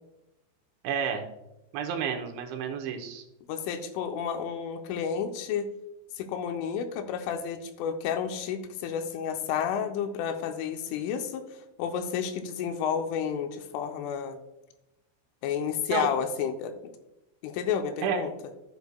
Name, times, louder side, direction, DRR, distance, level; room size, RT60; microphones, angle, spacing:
voice 1, 0.8-1.3 1.7-3.2 15.9-16.1 18.0-18.2, right 7 dB, 80° right, 3 dB, 3.0 m, -30 dB
voice 2, 3.5-5.7 6.2-14.4 15.4-16.9 17.4-18.3, left 7 dB, 85° left, 6 dB, 3.1 m, -31 dB
12.0 x 8.1 x 2.2 m, 0.92 s
omnidirectional pair, 5.8 m